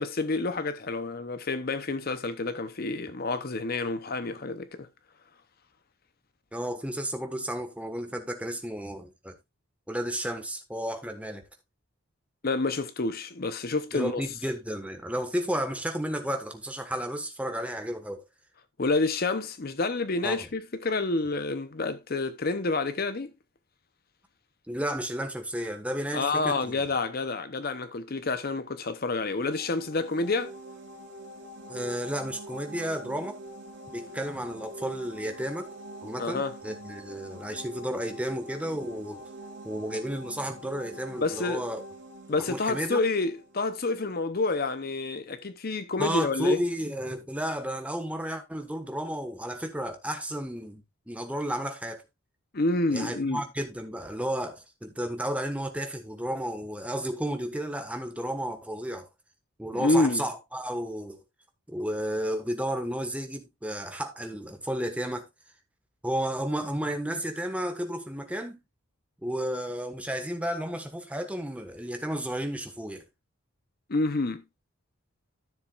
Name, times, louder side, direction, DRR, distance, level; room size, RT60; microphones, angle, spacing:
voice 1, 0.0-4.9 12.4-14.2 18.8-23.3 26.1-30.5 36.2-36.5 41.2-41.6 42.3-46.6 52.5-53.4 59.7-60.2 73.9-74.4, left 3 dB, 45° left, 0.7 m, -28 dB
voice 2, 6.5-9.3 9.9-11.4 13.9-18.2 20.2-20.4 24.7-26.7 31.7-33.4 33.9-35.7 36.0-39.3 39.6-41.8 42.5-43.0 46.0-52.0 52.9-59.1 59.6-61.2 61.7-65.3 66.0-68.6 69.2-73.0, equal, 5° right, 1.4 m, -32 dB
sound 1, 29.3-43.9, right 1 dB, 60° right, 3.0 m, -44 dB
13.5 x 7.0 x 2.4 m
head